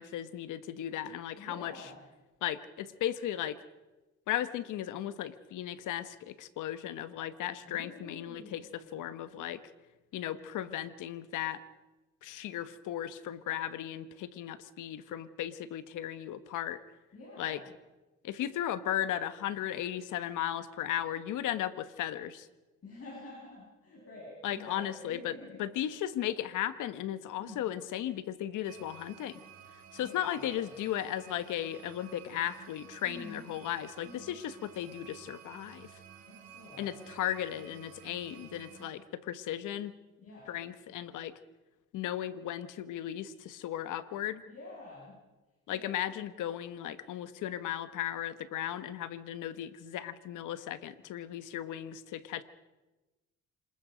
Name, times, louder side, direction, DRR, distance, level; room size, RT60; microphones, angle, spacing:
voice 1, 0.0-1.7 2.4-3.6 4.3-9.6 10.1-11.6 12.2-16.8 17.4-17.6 18.2-22.5 24.4-25.3 25.6-29.4 29.9-36.0 36.8-39.9 40.5-41.3 41.9-44.4 45.7-52.4, left 11 dB, 85° left, 13 dB, 1.2 m, -36 dB
voice 2, 1.4-2.0 7.6-9.0 17.1-17.7 22.8-25.6 27.3-27.8 30.0-30.7 33.0-33.5 34.0-34.4 36.2-37.1 40.2-40.6 44.5-45.2 45.7-46.0, left 2 dB, 50° left, -4 dB, 6.8 m, -49 dB
sound 1, 28.6-38.9, right 9 dB, 60° right, 4.2 m, -53 dB
27.0 x 20.5 x 5.1 m, 1.1 s
cardioid pair, 90°, 30 cm